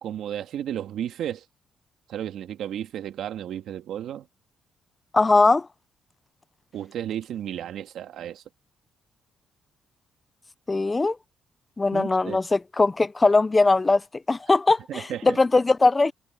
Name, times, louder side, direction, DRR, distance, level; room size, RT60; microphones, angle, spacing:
voice 1, 0.0-1.5 2.1-4.3 6.7-8.4 11.9-12.4 14.9-15.4, right 10 dB, 75° right, 2.0 m, -33 dB
voice 2, 5.1-5.7 10.7-11.2 11.8-14.0 14.3-16.1, left 3 dB, 20° left, 0.7 m, -20 dB
cardioid pair, 90°, 0 cm